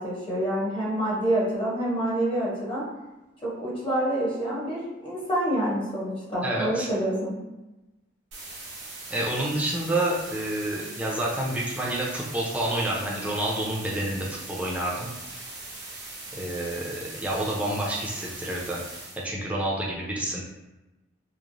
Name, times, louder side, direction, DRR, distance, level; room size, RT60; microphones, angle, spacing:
voice 1, 0.0-2.8 3.4-7.4, right 1 dB, 30° left, -6 dB, 0.8 m, -27 dB
voice 2, 6.4-6.9 9.1-15.1 16.4-18.8 19.2-20.4, right 1 dB, 10° right, -4 dB, 0.5 m, -28 dB
sound 1, 8.3-19.2, right 2 dB, 75° right, 0.8 m, -40 dB
3.0 x 2.0 x 2.5 m, 1.0 s
head